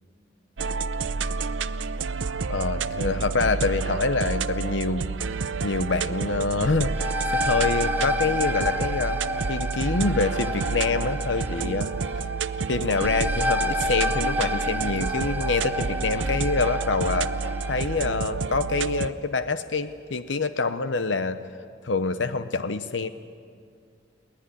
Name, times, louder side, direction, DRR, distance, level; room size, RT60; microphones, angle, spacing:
sound 1, 0.6-19.1, right 4 dB, 80° right, 0.6 m, -29 dB
voice 1, 2.5-5.1 5.6-6.9 7.3-9.2 9.5-11.9 12.7-17.3 17.7-21.4 21.8-23.1, left 3 dB, 75° left, 11 dB, 0.9 m, -26 dB
sound 2, 6.7-18.2, left 1 dB, 10° right, 0.7 m, -31 dB
22.0 x 19.5 x 9.9 m, 2.2 s
head